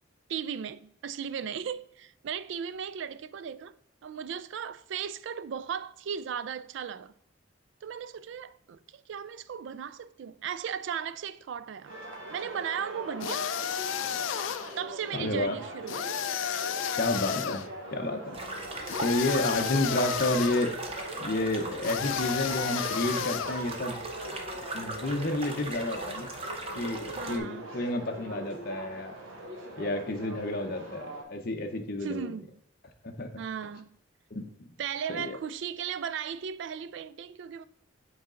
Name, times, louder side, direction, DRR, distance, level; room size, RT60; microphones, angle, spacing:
voice 1, 0.3-3.8 4.0-7.1 7.8-12.0 12.3-13.5 14.8-16.1 27.2-27.7 32.0-32.5 33.4-34.0 34.8-37.7, right 7 dB, 65° right, 0.3 m, -36 dB
sound 1, 11.8-31.2, right 1 dB, 80° right, 1.4 m, -41 dB
sound 2, 13.2-14.8 15.9-17.7 18.9-20.7 21.8-23.7, left 9 dB, 70° left, 0.3 m, -32 dB
voice 2, 15.1-15.6 16.9-18.6 19.0-20.7 21.2-24.0 24.7-26.3 26.7-29.1 29.8-32.3 33.0-33.3 34.3-34.7 35.1-35.4, left 2 dB, 45° left, 0.7 m, -30 dB
sound 3, 18.3-27.4, right 2 dB, 30° right, 0.7 m, -39 dB
7.9 x 4.1 x 3.7 m
head